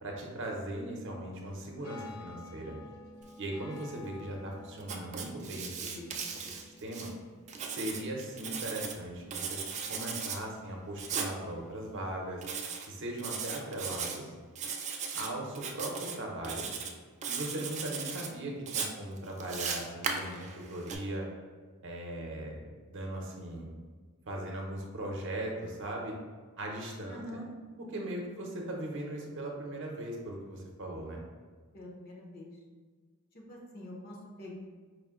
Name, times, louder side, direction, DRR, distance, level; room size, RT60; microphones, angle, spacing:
voice 1, 0.0-2.8 3.4-6.1 6.3-7.1 7.6-9.6 9.9-12.4 12.9-14.3 15.1-16.7 17.3-21.3 21.8-22.6 22.9-23.7 24.3-26.1 26.6-27.4 27.9-31.2, right 1 dB, 55° right, 0 dB, 0.7 m, -39 dB
sound 1, 1.8-12.1, left 3 dB, 85° left, 0.5 m, -53 dB
Writing, 4.8-7.1 7.5-9.0 9.3-10.4 11.0-11.3 12.4-12.9 13.2-14.2 14.5-15.3 15.5-16.1 16.4-16.9 17.2-18.3 18.7-20.9, right 6 dB, 30° right, 0.3 m, -37 dB
voice 2, 27.1-27.5 31.7-32.6 33.3-34.6, left 1 dB, 45° left, -2 dB, 0.8 m, -45 dB
4.8 x 2.1 x 3.6 m, 1.5 s
head